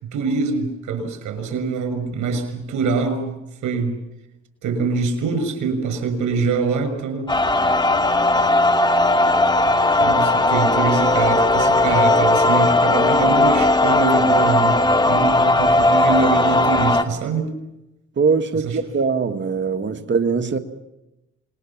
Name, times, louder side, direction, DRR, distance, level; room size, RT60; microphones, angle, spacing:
voice 1, 0.0-3.3 3.6-4.0 4.6-7.3 10.0-17.5 18.6-18.8, right 4 dB, 75° right, 6.4 m, -24 dB
sound 1, 7.3-17.0, left 2 dB, 15° left, 2.4 m, -17 dB
voice 2, 18.2-20.6, right 5 dB, 40° right, 2.0 m, -21 dB
27.0 x 22.0 x 7.4 m
cardioid pair, 90°, 30 cm